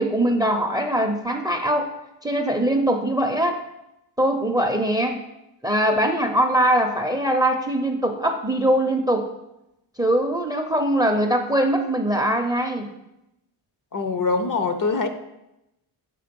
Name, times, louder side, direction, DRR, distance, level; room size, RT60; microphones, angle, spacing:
voice 1, 0.0-1.9 2.2-3.6 4.2-5.2 5.6-9.3 10.0-12.9, right 1 dB, 10° right, 5 dB, 0.6 m, -22 dB
voice 2, 13.9-15.1, left 4 dB, 40° left, 8 dB, 0.7 m, -23 dB
6.9 x 3.5 x 5.2 m, 0.89 s
cardioid pair, 85°, 49 cm